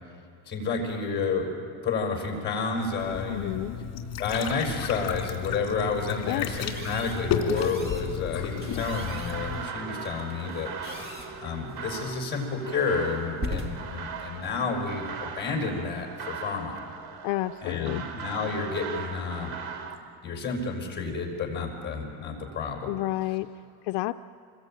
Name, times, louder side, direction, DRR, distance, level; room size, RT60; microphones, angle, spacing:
voice 1, 0.5-3.6 4.2-10.7 11.4-16.8 17.6-19.5 20.2-22.9, left 4 dB, 25° left, 1 dB, 5.9 m, -30 dB
sound 1, 3.0-9.7, left 6 dB, 50° left, 3.0 m, -32 dB
voice 2, 3.3-3.8 6.2-6.5 17.2-18.0 22.9-23.5 23.8-24.1, left 17 dB, 70° left, 9 dB, 0.6 m, -30 dB
sound 2, 6.5-15.6, equal, 20° right, 2.4 m, -42 dB
sound 3, 8.8-20.0, right 6 dB, 80° right, 2.9 m, -39 dB
27.0 x 21.5 x 9.1 m, 2.4 s
cardioid pair, 160°, 45 cm